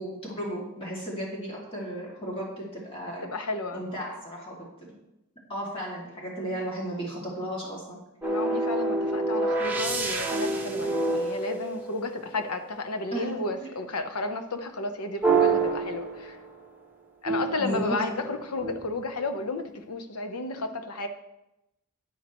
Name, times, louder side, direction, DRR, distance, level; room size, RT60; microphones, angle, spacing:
voice 1, 0.0-3.3 3.7-4.9 5.5-8.0 13.1-13.3 13.6-13.7 17.6-18.0, equal, 25° left, -4 dB, 2.5 m, -34 dB
voice 2, 3.2-3.8 6.4-6.6 8.2-16.4 17.2-21.1, left 2 dB, 80° left, 7 dB, 1.0 m, -32 dB
sound 1, 8.2-12.4 15.2-16.7 17.3-19.0, right 3 dB, 10° right, 1.1 m, -28 dB
12.0 x 9.0 x 3.1 m, 0.91 s
head